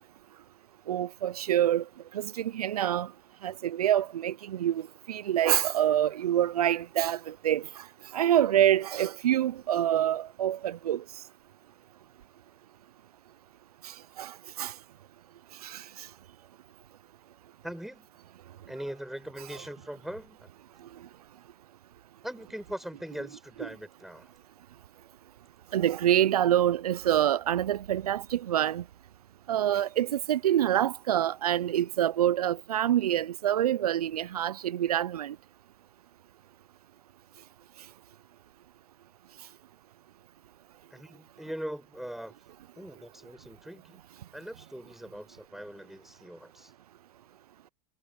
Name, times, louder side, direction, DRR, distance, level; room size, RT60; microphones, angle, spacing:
voice 1, 0.9-1.8 2.1-3.1 3.4-4.8 5.1-7.7 8.1-11.0 13.8-14.7 15.6-16.1 25.7-28.8 29.5-35.4, right 11 dB, 80° right, 0.8 m, -26 dB
voice 2, 17.6-18.1 18.7-20.5 22.2-24.3 40.9-42.3 42.8-44.0 44.3-46.7, equal, ahead, 7.2 m, -41 dB
hypercardioid pair, 90°, 19 cm